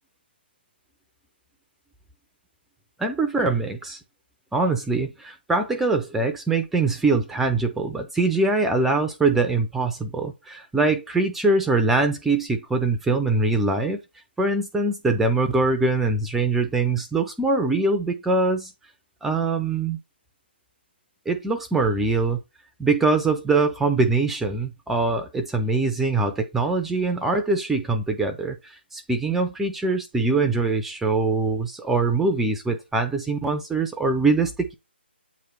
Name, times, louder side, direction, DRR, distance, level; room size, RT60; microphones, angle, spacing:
voice 1, 3.0-4.0 4.5-14.0 14.4-18.7 19.2-20.0 21.3-22.4 22.8-34.7, right 3 dB, 5° right, 0.3 m, -23 dB
8.3 x 3.1 x 4.4 m
figure-of-eight pair, 150°, 6 cm